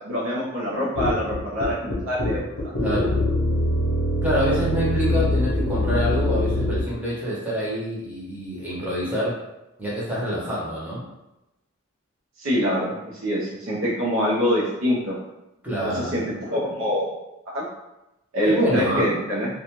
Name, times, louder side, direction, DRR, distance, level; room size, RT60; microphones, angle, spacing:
voice 1, 0.0-2.4 12.4-15.2 15.8-17.1 17.5-17.6 18.3-19.5, equal, 65° right, -6 dB, 0.6 m, -25 dB
sound 1, 1.0-6.9, left 1 dB, 70° left, 0.6 m, -23 dB
voice 2, 2.8-3.2 4.2-9.4 9.8-11.0 15.6-16.3 18.5-19.1, equal, 5° right, -8 dB, 0.8 m, -26 dB
2.5 x 2.2 x 2.9 m, 0.94 s
head